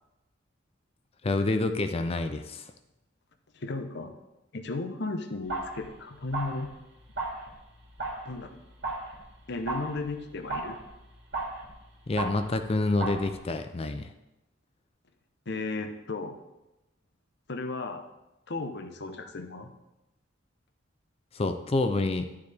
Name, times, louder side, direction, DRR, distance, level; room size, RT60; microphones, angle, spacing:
voice 1, 1.2-2.7 12.1-14.1 21.3-22.3, left 2 dB, 30° left, 8 dB, 0.4 m, -28 dB
voice 2, 3.5-4.1 4.5-6.7 8.3-8.6 9.5-10.8 15.5-16.4 17.5-18.0 18.5-19.7, left 3 dB, 60° left, 7 dB, 0.8 m, -35 dB
sound 1, 5.5-5.9 6.2-12.7 13.0-13.4, right 2 dB, 60° right, 2.4 m, -37 dB
11.5 x 6.7 x 3.5 m, 0.95 s
head